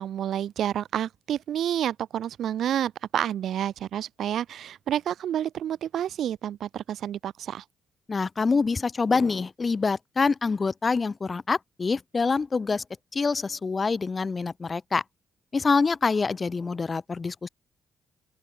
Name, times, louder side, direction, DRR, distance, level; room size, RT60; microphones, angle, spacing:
voice 1, 0.0-7.6, right 10 dB, 70° right, 0.8 m, -29 dB
voice 2, 8.1-12.8 13.1-15.0 15.5-17.5, left 4 dB, 30° left, 1.2 m, -26 dB
open air
cardioid pair, 90°, 0 cm